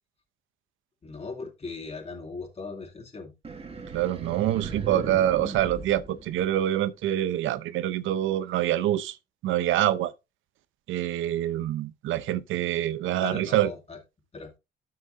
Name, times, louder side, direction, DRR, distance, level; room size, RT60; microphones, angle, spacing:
voice 1, 1.0-3.3 8.6-8.7 13.2-14.0 14.3-14.5, left 4 dB, 30° left, 2.5 m, -38 dB
sound 1, 3.4-6.9, right 4 dB, 30° right, 2.0 m, -37 dB
voice 2, 3.9-9.2 9.4-10.1 10.9-13.7, right 12 dB, 85° right, 0.7 m, -26 dB
12.5 x 5.8 x 2.6 m
cardioid pair, 90°, 20 cm